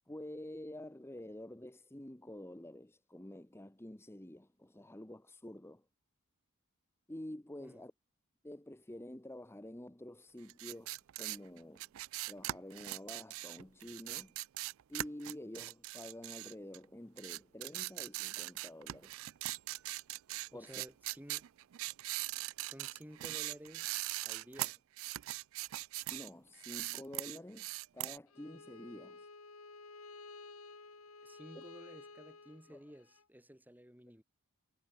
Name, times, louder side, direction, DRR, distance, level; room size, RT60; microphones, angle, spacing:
voice 1, 0.1-5.8 7.1-7.9 8.4-11.9 12.3-14.3 14.9-19.2 20.5-20.8 26.1-29.3 31.5-31.6 32.7-32.8, left 1 dB, 10° left, 0.9 m, -49 dB
sound 1, 10.5-16.8 17.2-26.3 26.6-28.2, right 17 dB, 65° right, 0.3 m, -41 dB
voice 2, 20.5-21.5 22.6-24.8 31.2-34.2, equal, 10° right, 7.3 m, -54 dB
Bowed string instrument, 28.3-33.2, left 3 dB, 80° left, 2.8 m, -53 dB
head